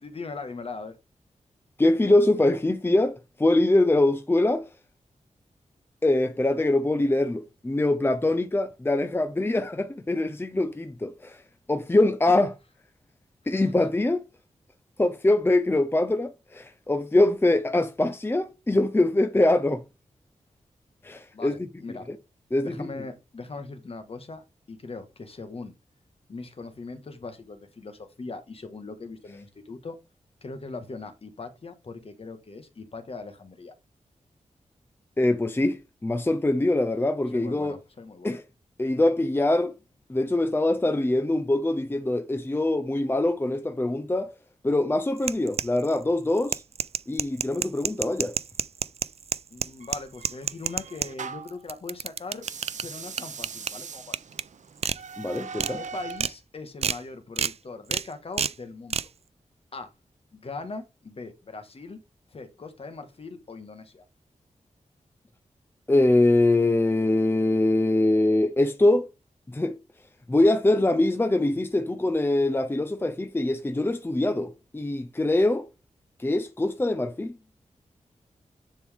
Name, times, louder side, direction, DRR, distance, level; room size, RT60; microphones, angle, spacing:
voice 1, 0.0-1.0 13.4-13.6 21.3-22.1 22.6-25.7 26.3-29.9 30.4-33.7 37.3-38.4 49.5-52.4 52.8-54.1 55.7-59.1 59.7-59.9 60.3-62.0 62.3-64.0, left 3 dB, 50° left, 1.7 m, -40 dB
voice 2, 1.8-4.7 6.0-11.4 11.7-12.5 13.5-14.2 15.0-19.8 21.0-21.7 22.1-22.2 22.5-22.9 35.2-37.8 38.2-38.4 38.8-39.7 40.1-44.3 44.6-46.6 47.1-48.4 55.2-55.8 65.9-69.1 69.5-69.8 70.3-75.7 76.2-77.4, left 2 dB, 15° left, 0.7 m, -23 dB
sound 1, 45.2-46.0 46.4-51.1 51.5-52.8 53.2-53.7 54.1-54.4 54.8-55.0 55.4-55.7 56.1-56.3 56.8-57.0 57.4-57.5 57.9-58.1 58.4-58.5 58.9-59.1, right 7 dB, 55° right, 0.4 m, -28 dB
sound 2, 49.8-51.6 52.3-56.3, right 6 dB, 75° right, 0.8 m, -40 dB
10.5 x 4.6 x 3.6 m
wide cardioid pair, 115°, 13 cm